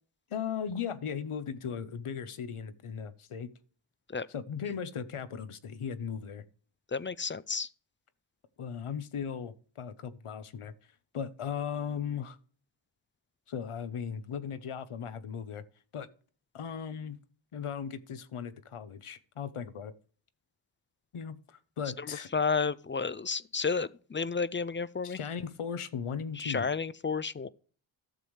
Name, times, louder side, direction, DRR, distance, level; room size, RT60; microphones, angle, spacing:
voice 1, 0.3-3.5 4.3-6.4 8.6-10.7 11.1-12.4 13.5-15.6 15.9-16.1 16.5-17.2 17.5-19.9 21.1-22.3 25.0-26.7, left 7 dB, 80° left, 0.9 m, -37 dB
voice 2, 6.9-7.7 22.3-25.2 26.4-27.5, left 5 dB, 25° left, 0.3 m, -31 dB
13.5 x 7.0 x 3.2 m
wide cardioid pair, 65°, 50 cm